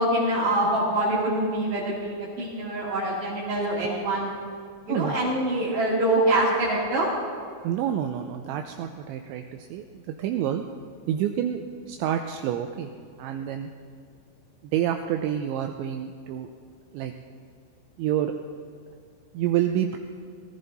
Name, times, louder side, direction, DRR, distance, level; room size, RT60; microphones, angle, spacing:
voice 1, 0.0-4.3 4.9-7.1, right 1 dB, 60° right, -8 dB, 4.3 m, -25 dB
voice 2, 7.6-10.6 11.1-12.9 13.2-13.7 14.6-16.5 16.9-17.1 18.0-18.3 19.3-20.0, right 10 dB, 85° right, 5 dB, 2.7 m, -28 dB
20.0 x 14.5 x 4.1 m, 2.1 s
omnidirectional pair, 5.8 m